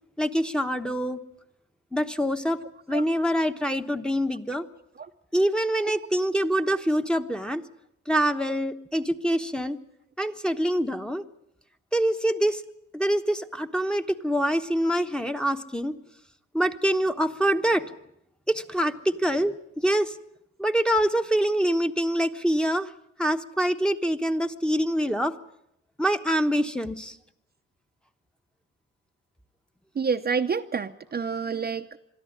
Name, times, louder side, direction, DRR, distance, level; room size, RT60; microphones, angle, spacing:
voice 1, 0.2-1.2 1.9-2.6 2.9-4.7 5.3-7.6 8.1-9.8 10.2-11.2 11.9-12.6 12.9-16.0 16.5-17.8 18.5-20.1 20.6-22.9 23.2-25.3 26.0-27.2, equal, 5° left, 5 dB, 1.1 m, -25 dB
voice 2, 30.0-32.0, right 5 dB, 30° right, 6 dB, 0.8 m, -28 dB
22.5 x 13.5 x 9.8 m, 0.79 s
cardioid pair, 90°, 30 cm